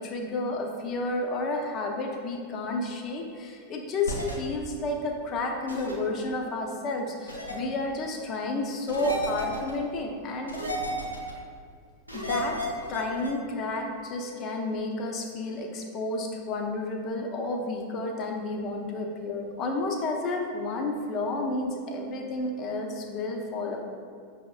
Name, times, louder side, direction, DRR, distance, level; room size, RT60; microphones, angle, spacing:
voice 1, 0.0-10.6 12.1-23.8, left 2 dB, 35° left, 2 dB, 0.6 m, -31 dB
sound 1, 4.0-4.3 5.7-5.9 7.3-7.6 8.9-9.7 10.5-11.3 12.1-13.3, left 1 dB, 85° left, 0.7 m, -33 dB
5.9 x 3.5 x 2.2 m, 2.2 s
figure-of-eight pair, 90°, 0 cm